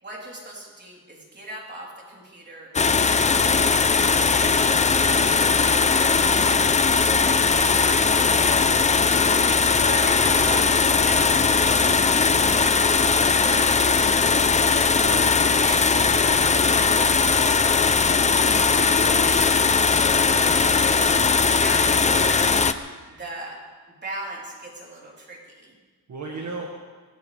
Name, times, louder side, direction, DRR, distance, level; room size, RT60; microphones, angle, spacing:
voice 1, 0.0-3.1 3.6-4.7 5.1-6.7 7.2-9.3 9.9-14.5 15.5-18.8 20.0-22.5 23.1-23.6 24.0-25.7 26.3-26.6, right 2 dB, 30° right, -3 dB, 3.7 m, -39 dB
sound 1, 2.7-22.7, left 5 dB, 20° left, 0.5 m, -19 dB
voice 2, 9.6-10.0 14.9-15.4 19.0-19.4 26.1-26.8, right 3 dB, 50° right, -2 dB, 1.8 m, -35 dB
23.0 x 18.0 x 3.4 m, 1.4 s
wide cardioid pair, 170°, 35 cm